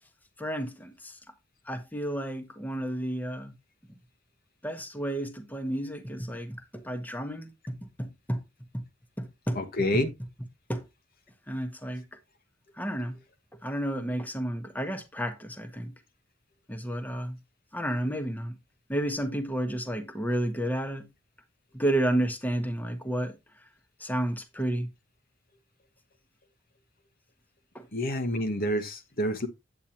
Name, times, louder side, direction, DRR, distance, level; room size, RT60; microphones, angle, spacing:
voice 1, 0.4-1.2 1.7-3.5 4.6-8.4 8.7-8.8 9.2-9.6 10.7-10.8 11.5-12.0 12.8-13.2 13.6-15.9 16.7-17.4 17.7-18.5 18.9-21.1 21.7-23.3 24.0-24.9 27.7-27.9, right 1 dB, 10° left, 1.1 m, -31 dB
voice 2, 9.5-10.1 27.9-29.5, equal, 50° left, 1.2 m, -28 dB
9.1 x 8.7 x 2.9 m
head